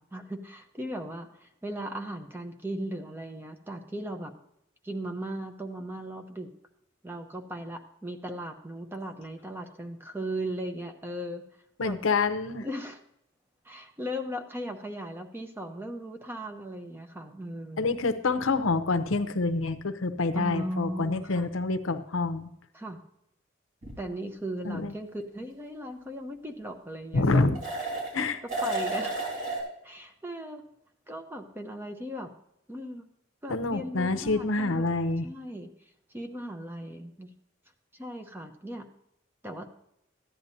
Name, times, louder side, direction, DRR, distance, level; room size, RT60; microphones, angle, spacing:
voice 1, 0.0-4.3 4.8-6.5 7.0-11.4 11.8-12.0 12.6-13.0 13.6-17.9 20.3-21.5 22.7-23.0 24.0-27.5 28.6-29.2 29.8-30.6 31.1-32.3 32.7-33.1 33.4-35.0 35.2-35.7 36.1-37.3 37.9-38.9 39.4-39.7, right 1 dB, 10° right, 5 dB, 0.8 m, -37 dB
voice 2, 11.8-12.7 17.8-22.5 24.6-24.9 27.1-27.6 28.1-28.4 33.5-35.3, left 3 dB, 80° left, 10 dB, 0.7 m, -27 dB
sound 1, 23.8-23.9 27.5-28.2 28.5-29.6, right 2 dB, 40° right, 4.2 m, -31 dB
14.5 x 10.0 x 2.7 m, 0.79 s
head